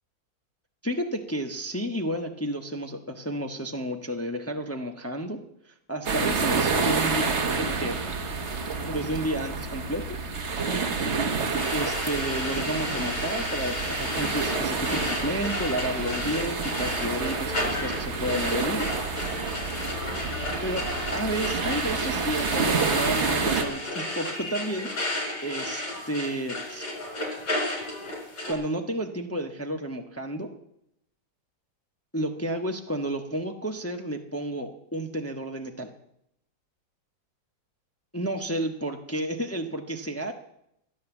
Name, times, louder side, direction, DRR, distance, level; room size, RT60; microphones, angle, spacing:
voice 1, 0.8-5.4 5.9-8.0 8.9-10.2 11.7-18.9 20.6-20.8 21.1-24.9 25.4-26.9 28.5-30.5 32.1-35.9 38.1-40.3, right 1 dB, 10° left, 4 dB, 0.8 m, -31 dB
sound 1, 6.0-23.6, right 4 dB, 40° right, 1.4 m, -29 dB
sound 2, 11.6-28.5, left 1 dB, 60° left, 4.6 m, -33 dB
14.0 x 10.5 x 7.1 m, 0.76 s
omnidirectional pair, 2.0 m